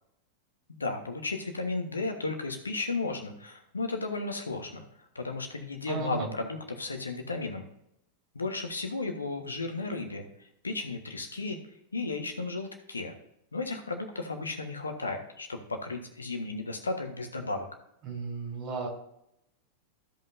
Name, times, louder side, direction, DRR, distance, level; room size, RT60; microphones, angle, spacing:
voice 1, 0.7-7.6 8.3-11.6 11.9-13.1 13.5-17.7, left 3 dB, 75° left, 5 dB, 1.4 m, -34 dB
voice 2, 5.9-6.3 18.0-18.9, right 5 dB, 40° right, 1 dB, 3.3 m, -34 dB
15.0 x 5.4 x 2.7 m, 0.77 s
figure-of-eight pair, 90°, 0 cm